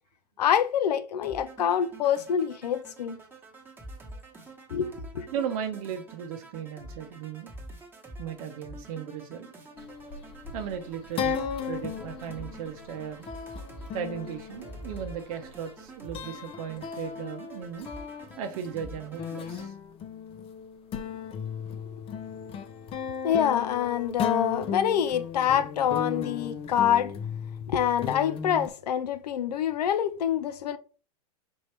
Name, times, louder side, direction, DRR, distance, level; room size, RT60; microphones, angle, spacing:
voice 1, 0.4-3.2 4.7-5.3 23.2-27.1 27.7-30.8, left 9 dB, 90° left, 0.5 m, -26 dB
sound 1, 1.2-19.7, right 2 dB, 10° right, 1.2 m, -46 dB
voice 2, 5.3-7.5 8.2-9.5 10.5-13.3 13.9-17.9 18.4-19.8, right 8 dB, 60° right, 0.7 m, -36 dB
sound 2, 9.8-15.7 16.1-28.7, left 7 dB, 30° left, 0.5 m, -36 dB
5.3 x 2.9 x 3.2 m
hypercardioid pair, 115°, 20 cm